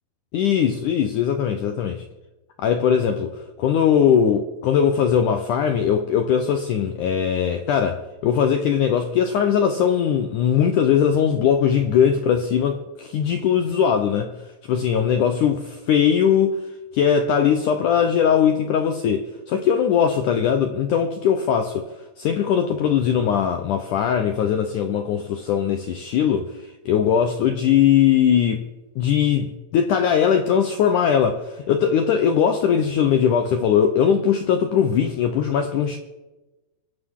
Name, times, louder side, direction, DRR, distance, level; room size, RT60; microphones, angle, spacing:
voice 1, 0.3-2.0 2.6-14.3 14.7-16.6 16.9-21.9 22.2-28.6 29.0-36.0, left 8 dB, 75° left, 6 dB, 1.8 m, -20 dB
25.5 x 10.5 x 3.7 m, 1.1 s
omnidirectional pair, 4.7 m